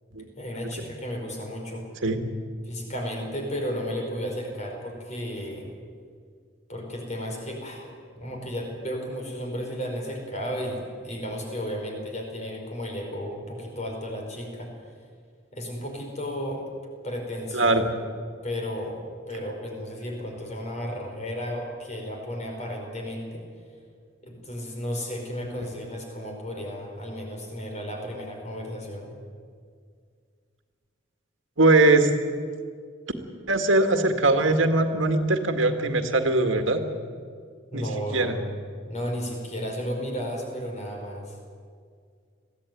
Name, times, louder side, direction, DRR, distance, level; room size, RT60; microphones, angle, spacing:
voice 1, 0.4-1.8 2.6-5.7 6.7-7.9 8.1-14.7 15.5-16.6 17.0-17.8 18.4-23.4 24.2-29.1 37.7-38.5 38.8-41.4, equal, 35° left, 1 dB, 4.9 m, -33 dB
voice 2, 17.5-17.8 31.6-32.1 33.5-36.8 37.7-38.4, right 2 dB, 80° right, 6 dB, 1.9 m, -21 dB
21.5 x 16.0 x 9.3 m, 2.1 s
head